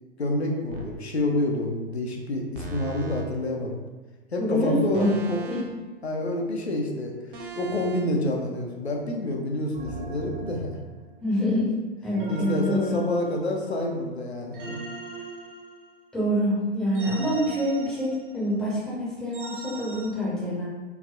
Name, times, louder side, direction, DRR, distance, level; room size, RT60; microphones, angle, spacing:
voice 1, 0.2-3.8 4.3-5.4 6.0-7.1 7.6-10.8 12.3-14.8, left 1 dB, 85° left, 0 dB, 0.5 m, -28 dB
sound 1, 0.7-1.0 2.5-3.3 4.9-5.8 7.3-8.1 9.7-11.2 12.1-13.7 14.5-16.2 16.9-18.4 19.3-20.1, right 3 dB, 55° right, 0.6 m, -39 dB
voice 2, 4.4-5.1 5.5-5.6 11.2-11.7 12.0-13.0 16.1-20.7, equal, ahead, -8 dB, 0.5 m, -26 dB
3.3 x 2.1 x 2.3 m, 1.2 s
figure-of-eight pair, 105°, 32 cm